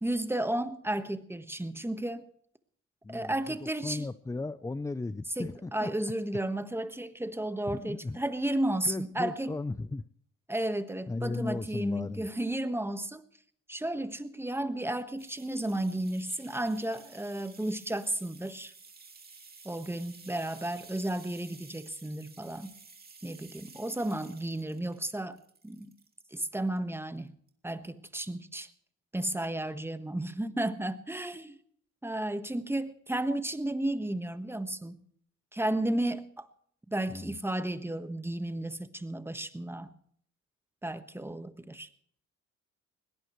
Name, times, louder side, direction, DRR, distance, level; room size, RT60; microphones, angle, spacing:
voice 1, 0.0-2.3 3.1-4.1 5.4-9.5 10.5-13.2 13.7-18.7 19.6-22.7 23.2-25.4 25.6-25.9 26.3-27.3 27.6-28.7 29.1-31.6 32.0-35.0 35.5-36.5 36.9-39.9 40.8-41.9, right 1 dB, 10° right, 10 dB, 1.4 m, -33 dB
voice 2, 3.0-5.9 7.7-8.2 8.8-10.0 11.1-12.2 37.1-37.4, left 3 dB, 10° left, 15 dB, 0.5 m, -36 dB
sound 1, 15.2-26.1 26.6-27.2 27.5-27.6, right 4 dB, 30° right, 2.6 m, -53 dB
21.5 x 18.0 x 3.2 m, 0.62 s
cardioid pair, 90°, 30 cm